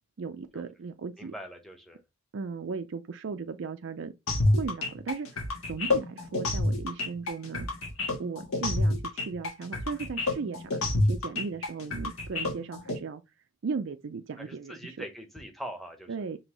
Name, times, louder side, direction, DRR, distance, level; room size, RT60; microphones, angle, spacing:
voice 1, 0.2-1.3 2.3-4.1 4.4-7.7 8.2-13.2 13.6-15.0 16.1-16.4, right 5 dB, 55° right, 0.4 m, -36 dB
voice 2, 1.2-2.0 14.4-16.2, equal, ahead, 0.9 m, -42 dB
sound 1, 4.3-13.0, left 2 dB, 70° left, 1.4 m, -28 dB
5.3 x 3.0 x 3.0 m
head